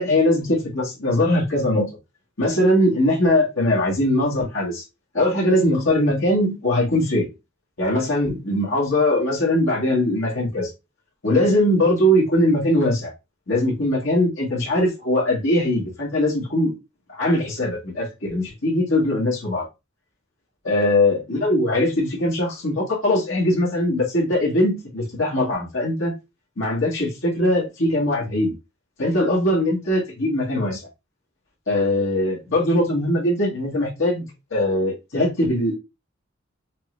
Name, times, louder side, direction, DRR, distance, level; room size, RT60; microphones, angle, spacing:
voice 1, 0.0-1.9 2.4-4.8 5.1-7.3 7.8-10.7 11.2-13.1 13.5-16.7 17.1-19.7 20.6-26.1 26.6-28.5 29.0-30.8 31.7-35.8, left 1 dB, 70° left, 1.9 m, -21 dB
5.4 x 3.3 x 2.6 m
head